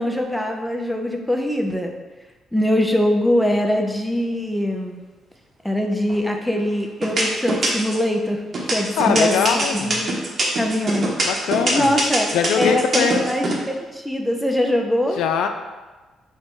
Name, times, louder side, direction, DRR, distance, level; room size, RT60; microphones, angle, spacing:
voice 1, 0.0-1.9 2.5-5.0 5.6-10.1 10.6-11.1 11.7-15.2, left 1 dB, ahead, 3 dB, 0.5 m, -22 dB
sound 1, 6.1-6.5 7.0-8.0 8.5-13.5, right 2 dB, 45° right, 0.9 m, -22 dB
voice 2, 9.0-10.0 11.3-11.9 12.3-13.3 15.2-15.5, left 7 dB, 85° left, 6 dB, 0.3 m, -22 dB
4.3 x 2.2 x 4.4 m, 1.2 s
cardioid pair, 90°, 0 cm